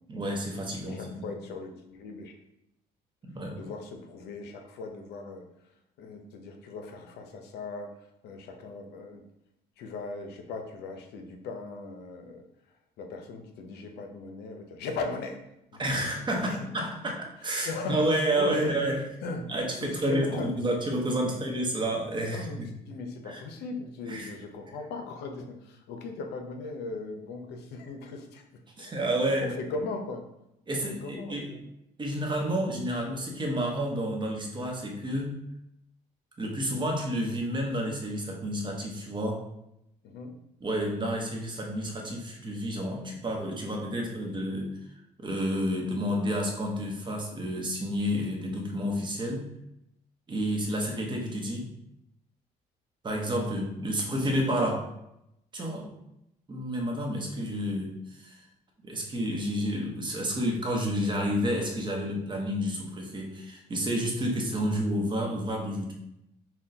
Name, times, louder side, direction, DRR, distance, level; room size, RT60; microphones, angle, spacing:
voice 1, 0.1-1.3 3.2-3.6 15.8-19.0 19.5-22.7 23.3-23.4 24.1-24.3 28.8-29.5 30.7-31.5 32.0-35.4 36.4-39.4 40.6-44.8 45.2-49.5 50.3-51.7 53.0-54.9 55.5-55.9 56.5-58.4 58.8-65.9, equal, 30° right, 0 dB, 0.8 m, -30 dB
voice 2, 0.8-2.3 3.6-5.5 6.0-8.0 8.2-9.2 9.8-12.4 13.0-15.4 15.7-16.6 17.6-18.7 19.2-19.5 19.8-20.5 21.3-21.5 22.3-22.6 22.9-28.4 28.8-28.9 29.4-30.2 30.8-31.6 32.4-32.6 40.0-40.3, left 3 dB, 75° left, 4 dB, 0.6 m, -38 dB
5.8 x 2.2 x 2.7 m, 0.84 s
cardioid pair, 110°, 17 cm